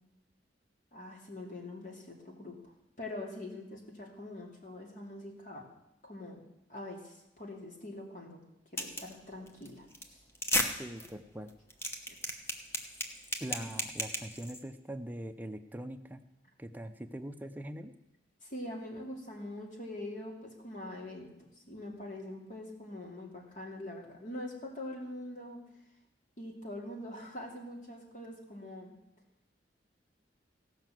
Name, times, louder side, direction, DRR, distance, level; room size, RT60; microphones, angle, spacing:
voice 1, 0.9-2.6 3.0-5.7 6.0-6.4 6.7-8.4 8.7-10.2 13.6-13.7 18.4-21.3 21.7-25.6 26.4-28.9, left 1 dB, 45° left, 0 dB, 2.5 m, -43 dB
sound 1, 8.8-9.1 9.5-9.7 9.9-10.0 10.3-10.7 11.0-11.1 11.5-14.6, left 1 dB, 15° left, 1.1 m, -33 dB
voice 2, 10.8-11.5 13.4-16.2 16.6-17.9, right 1 dB, 10° right, 7 dB, 0.6 m, -42 dB
16.0 x 5.8 x 7.6 m, 0.91 s
head